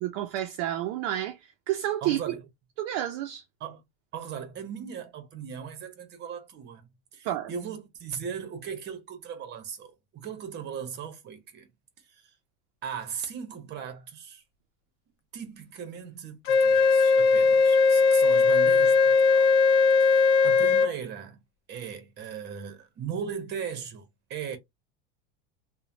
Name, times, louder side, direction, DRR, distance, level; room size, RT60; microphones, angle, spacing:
voice 1, 0.0-1.4 1.7-2.4 2.8-3.4 7.2-7.5, right 12 dB, 50° right, 0.5 m, -30 dB
voice 2, 2.0-2.4 3.6-3.8 4.1-11.7 12.0-12.3 12.8-14.4 15.3-19.5 20.0-21.4 21.7-24.6, right 7 dB, 30° right, 0.8 m, -38 dB
Wind instrument woodwind instrument, 16.5-20.9, left 5 dB, 85° left, 0.5 m, -19 dB
3.0 x 2.1 x 2.5 m
supercardioid pair, 150°, 33 cm